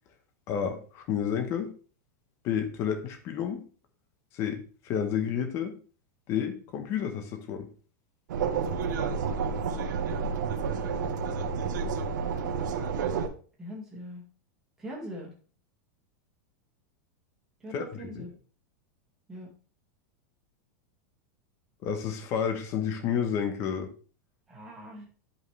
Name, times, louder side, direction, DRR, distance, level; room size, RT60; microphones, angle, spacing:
voice 1, 0.5-1.7 2.4-3.6 4.3-5.7 6.3-7.7 17.7-18.3 21.8-23.9, left 8 dB, 30° left, 6 dB, 1.0 m, -30 dB
sound 1, 8.3-13.3, right 5 dB, 85° right, 1.0 m, -30 dB
voice 2, 13.6-14.2 14.8-15.3 17.6-18.3 19.3-19.5 24.5-25.1, equal, 5° right, -4 dB, 2.0 m, -41 dB
10.5 x 5.4 x 3.3 m, 0.40 s
supercardioid pair, 175°, 10 cm